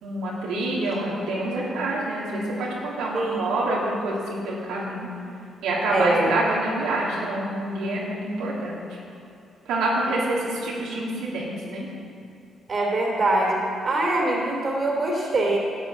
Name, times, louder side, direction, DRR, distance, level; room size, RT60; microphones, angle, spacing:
voice 1, 0.0-5.1 5.6-8.8 9.7-11.9, right 1 dB, 90° right, -5 dB, 2.7 m, -27 dB
voice 2, 5.9-6.3 12.7-13.6 13.8-15.6, right 2 dB, 40° right, -1 dB, 3.0 m, -23 dB
12.0 x 7.8 x 7.3 m, 2.6 s
cardioid pair, 90°, 0 cm